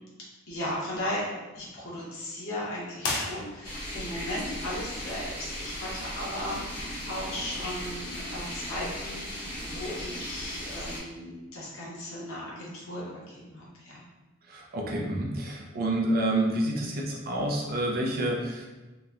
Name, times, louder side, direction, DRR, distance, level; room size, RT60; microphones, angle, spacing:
voice 1, 0.5-1.2 1.5-14.0, left 1 dB, 85° left, -5 dB, 0.9 m, -36 dB
sound 1, 3.0-4.0, left 3 dB, 50° left, 0.4 m, -33 dB
sound 2, 3.6-11.0, equal, 25° left, 0.9 m, -37 dB
voice 2, 14.5-18.7, right 1 dB, 45° right, -1 dB, 0.4 m, -28 dB
2.8 x 2.1 x 2.4 m, 1.1 s
head